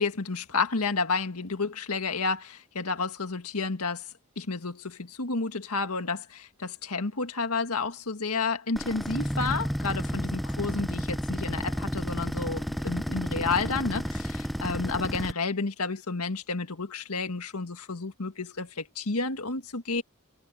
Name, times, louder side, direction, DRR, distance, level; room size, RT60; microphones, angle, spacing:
voice 1, 0.0-4.1 4.4-20.0, left 4 dB, 85° left, 1.8 m, -31 dB
sound 1, 8.8-15.3, equal, ahead, 0.4 m, -31 dB
head